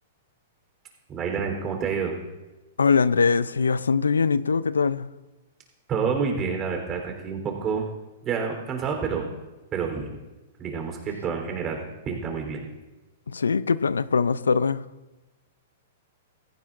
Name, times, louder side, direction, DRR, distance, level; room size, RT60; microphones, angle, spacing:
voice 1, 1.1-2.1 5.9-7.9 8.2-9.2 9.7-10.2 10.6-12.7, right 6 dB, 30° right, 3.6 m, -28 dB
voice 2, 2.8-5.1 13.3-14.8, left 5 dB, 85° left, 0.4 m, -22 dB
17.0 x 15.0 x 2.5 m
hypercardioid pair, 115°, 0 cm